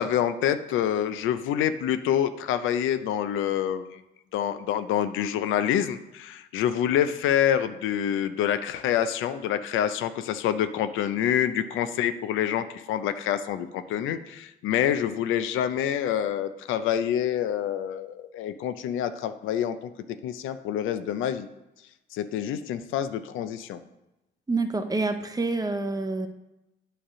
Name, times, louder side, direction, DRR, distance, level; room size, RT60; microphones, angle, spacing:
voice 1, 0.0-4.0 4.3-19.9 20.2-21.5 22.1-23.8, left 10 dB, 90° left, 11 dB, 0.5 m, -27 dB
voice 2, 24.5-26.3, right 3 dB, 20° right, 8 dB, 0.7 m, -27 dB
8.8 x 3.3 x 6.0 m, 0.96 s
cardioid pair, 90°, 20 cm